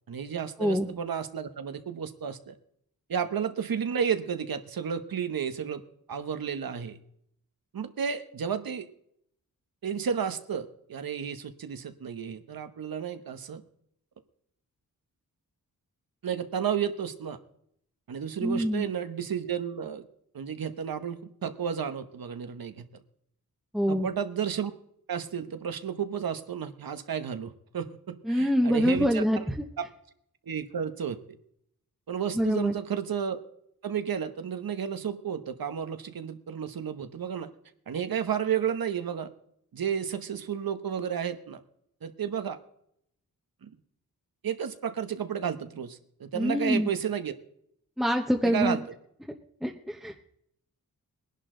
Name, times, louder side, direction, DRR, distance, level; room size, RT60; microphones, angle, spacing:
voice 1, 0.1-2.5 3.1-5.8 6.1-7.0 7.7-8.9 9.8-13.6 16.2-17.4 18.1-20.1 20.3-22.9 23.9-24.7 25.1-29.3 30.5-31.2 32.1-33.4 33.8-37.5 37.9-39.3 39.7-41.6 42.0-42.6 43.6-43.7 44.4-47.3 48.4-48.8, right 8 dB, 75° right, 10 dB, 1.2 m, -32 dB
voice 2, 18.4-18.8 23.7-24.1 28.2-29.5 32.3-32.7 46.3-46.9 48.0-48.8 49.6-50.2, equal, ahead, 2 dB, 1.0 m, -25 dB
21.0 x 11.0 x 3.8 m, 0.72 s
wide cardioid pair, 125°, 36 cm